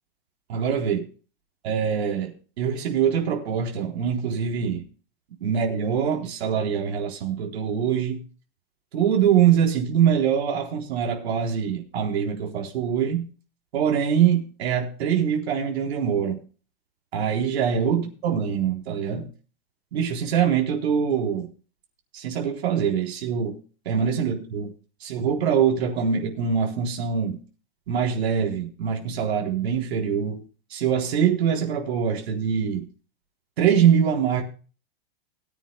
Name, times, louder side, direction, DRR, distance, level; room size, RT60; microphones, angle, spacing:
voice 1, 0.5-1.1 1.6-4.8 5.4-8.2 8.9-13.3 13.7-16.4 17.1-19.3 19.9-21.5 22.1-23.6 23.9-24.7 25.0-27.4 27.9-30.4 30.7-32.9 33.6-34.4, right 8 dB, 75° right, 4.0 m, -23 dB
22.0 x 10.0 x 2.3 m
supercardioid pair, 160°, 32 cm